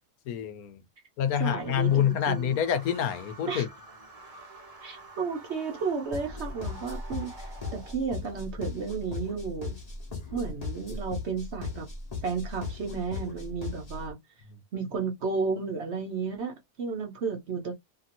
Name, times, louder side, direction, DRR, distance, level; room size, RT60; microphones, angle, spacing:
voice 1, 0.3-0.8 1.2-3.7, left 9 dB, 75° left, 1.1 m, -27 dB
voice 2, 1.4-2.5 3.5-3.6 4.8-9.8 10.3-11.9 12.2-14.2 14.7-17.7, right 5 dB, 55° right, 0.8 m, -33 dB
sound 1, 1.6-7.9, right 2 dB, 30° right, 0.7 m, -48 dB
sound 2, 6.1-14.1, left 4 dB, 30° left, 1.0 m, -38 dB
2.9 x 2.7 x 2.5 m
omnidirectional pair, 1.6 m